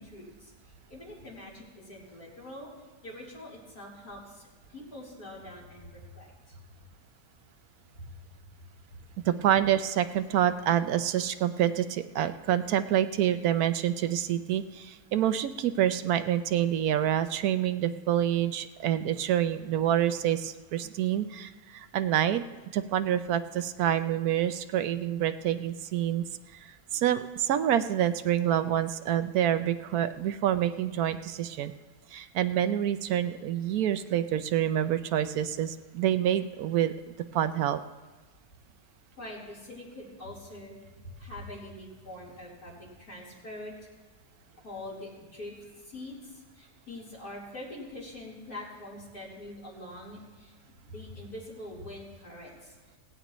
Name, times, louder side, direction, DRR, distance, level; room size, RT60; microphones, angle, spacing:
voice 1, 0.0-2.7 3.0-6.6 7.9-8.0 39.2-40.8 41.0-43.7 44.6-50.5 50.8-52.8, left 1 dB, 85° left, -6 dB, 4.3 m, -44 dB
voice 2, 9.2-22.4 22.7-26.2 26.6-31.7 32.1-37.8, right 11 dB, 75° right, 11 dB, 1.1 m, -27 dB
17.5 x 16.0 x 3.1 m, 1.3 s
omnidirectional pair, 1.6 m